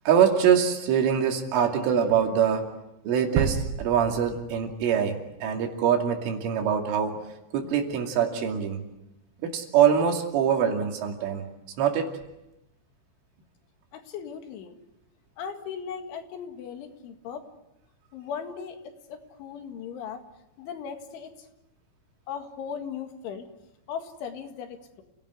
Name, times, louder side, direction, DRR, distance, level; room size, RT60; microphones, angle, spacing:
voice 1, 0.1-2.7 3.0-7.2 7.5-8.8 9.4-11.5 11.8-12.2, right 8 dB, 85° right, 3 dB, 5.1 m, -24 dB
sound 1, 3.4-5.3 5.7-5.8, right 7 dB, 65° right, 2.9 m, -31 dB
voice 2, 13.9-14.8 15.4-17.5 18.1-20.2 20.6-21.3 22.3-23.5 23.9-25.0, left 7 dB, 80° left, 5 dB, 4.4 m, -38 dB
29.5 x 17.5 x 9.6 m, 0.94 s
omnidirectional pair, 5.5 m